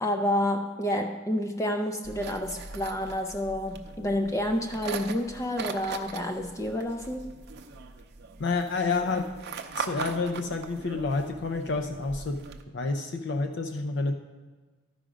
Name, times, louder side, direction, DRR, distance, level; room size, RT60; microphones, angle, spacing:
voice 1, 0.0-7.3, left 1 dB, 15° left, 5 dB, 0.4 m, -29 dB
sound 1, 2.0-12.6, right 4 dB, 55° right, 0.6 m, -40 dB
voice 2, 8.4-9.3 9.8-12.4 12.7-14.1, left 3 dB, 60° left, 5 dB, 0.6 m, -29 dB
12.5 x 4.9 x 5.0 m, 1.3 s
head